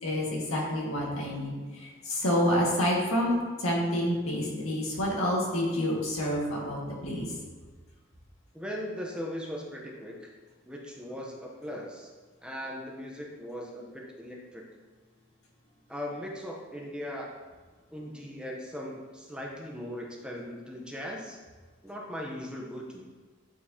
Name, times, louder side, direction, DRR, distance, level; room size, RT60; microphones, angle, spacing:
voice 1, 0.0-7.3, equal, 85° left, -3 dB, 1.7 m, -28 dB
voice 2, 8.5-10.3 10.6-12.1 12.4-14.6 15.9-17.3 17.9-21.4 21.8-23.1, equal, 5° right, -1 dB, 0.7 m, -39 dB
8.7 x 4.5 x 2.8 m, 1.4 s
head